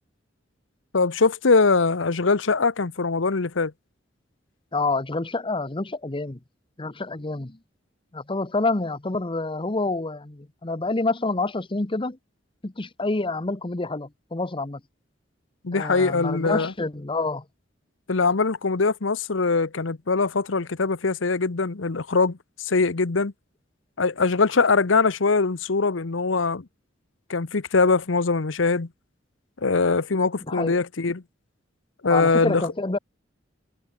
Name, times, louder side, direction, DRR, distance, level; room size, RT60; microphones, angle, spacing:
voice 1, 0.9-3.7 15.6-16.7 18.1-23.3 24.0-26.6 27.3-28.9 29.6-31.2 32.0-32.6, left 4 dB, 85° left, 0.9 m, -22 dB
voice 2, 4.7-6.4 6.8-7.6 8.1-12.2 12.6-14.8 15.7-17.4 30.5-30.8 32.1-33.0, left 3 dB, 25° left, 1.0 m, -27 dB
head